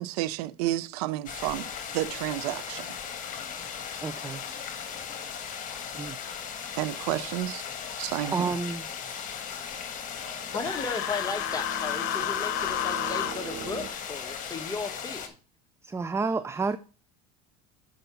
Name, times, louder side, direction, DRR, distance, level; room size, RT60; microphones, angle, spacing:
voice 1, 0.0-1.7 1.9-2.9 6.8-7.6 8.0-8.5, right 15 dB, 85° right, 0.5 m, -30 dB
sound 1, 1.3-15.3, left 7 dB, 45° left, 1.7 m, -37 dB
voice 2, 4.0-4.4 5.9-6.2 8.2-8.9 15.8-16.8, right 4 dB, 15° right, 0.4 m, -30 dB
sound 2, 9.4-13.9, right 10 dB, 65° right, 1.0 m, -43 dB
Human voice, 10.5-13.3, left 12 dB, 65° left, 1.0 m, -31 dB
voice 3, 10.5-15.3, left 4 dB, 20° left, 1.4 m, -35 dB
6.9 x 4.9 x 5.7 m
supercardioid pair, 100°, 19 cm